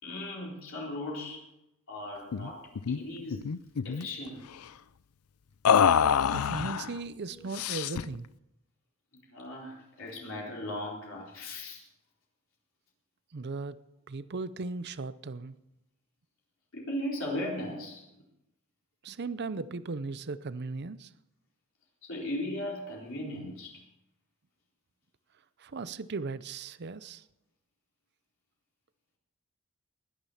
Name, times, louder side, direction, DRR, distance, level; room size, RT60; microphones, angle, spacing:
voice 1, 0.0-1.4 1.9-3.4 3.8-4.4 7.3-7.4 9.3-11.8 16.7-18.0 22.0-23.8, left 1 dB, 60° left, 4.2 m, -37 dB
sound 1, 2.3-2.5 2.8-3.0 3.3-4.1 5.6-6.9 7.5-8.1, left 7 dB, 80° left, 0.5 m, -25 dB
voice 2, 6.3-8.3 13.3-13.8 14.1-15.6 19.0-21.1 25.6-27.2, right 3 dB, 50° right, 0.6 m, -37 dB
20.0 x 10.5 x 5.7 m
head